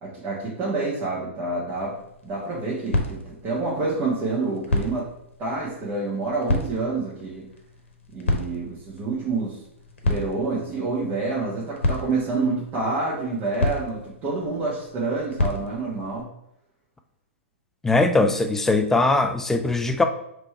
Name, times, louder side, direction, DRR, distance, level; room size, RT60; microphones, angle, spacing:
voice 1, 0.0-2.0 2.2-5.0 5.4-7.5 8.1-9.6 10.0-16.3, right 3 dB, 30° right, -7 dB, 1.2 m, -28 dB
sound 1, 1.7-16.2, left 2 dB, 70° left, 0.9 m, -31 dB
voice 2, 17.8-20.0, left 3 dB, 5° left, 7 dB, 0.3 m, -20 dB
3.3 x 3.3 x 4.3 m, 0.80 s
figure-of-eight pair, 115°, 7 cm